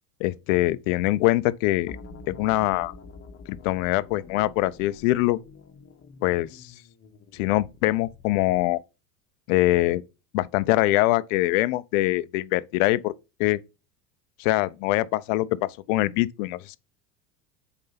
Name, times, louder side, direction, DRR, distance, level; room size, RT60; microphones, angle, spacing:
voice 1, 0.2-2.0 2.3-2.9 3.5-5.4 6.2-6.7 7.3-8.8 9.5-10.0 10.3-13.1 13.4-13.6 14.4-16.8, left 17 dB, 55° left, 0.6 m, -23 dB
sound 1, 1.9-8.8, left 3 dB, 30° left, 1.3 m, -47 dB
5.3 x 4.5 x 5.6 m
hypercardioid pair, 85°, 47 cm